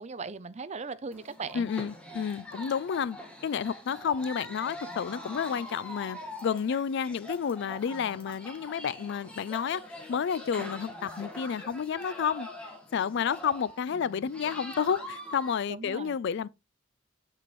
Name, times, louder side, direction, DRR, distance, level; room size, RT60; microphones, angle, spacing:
voice 1, 0.0-1.7 10.6-10.7 15.7-16.1, right 4 dB, 35° right, 0.5 m, -38 dB
sound 1, 1.1-15.5, left 1 dB, 5° left, 1.6 m, -43 dB
voice 2, 1.5-3.2 3.4-9.8 10.1-12.5 12.9-16.5, left 7 dB, 60° left, 0.3 m, -30 dB
7.0 x 6.7 x 3.1 m
head